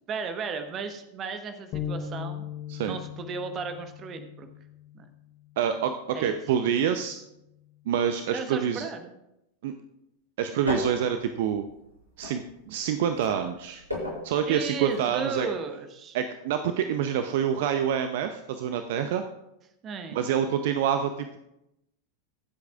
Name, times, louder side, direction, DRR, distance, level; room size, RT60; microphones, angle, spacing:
voice 1, 0.1-2.4 2.8-4.5 4.9-5.0 6.1-6.3 8.3-9.0 14.5-16.2 19.8-20.2, right 5 dB, 30° right, 8 dB, 1.2 m, -34 dB
sound 1, 1.7-5.2, left 8 dB, 35° left, 1.3 m, -38 dB
voice 2, 5.6-7.2 7.9-8.9 9.6-9.7 10.4-11.6 12.2-13.8 14.2-15.5 16.1-19.2 20.1-21.4, right 8 dB, 50° right, 8 dB, 0.6 m, -27 dB
sound 2, 10.6-12.8 13.1-15.1 15.3-15.5, left 2 dB, 85° right, 5.1 m, -35 dB
23.5 x 8.0 x 2.4 m, 0.85 s
figure-of-eight pair, 90°, 0 cm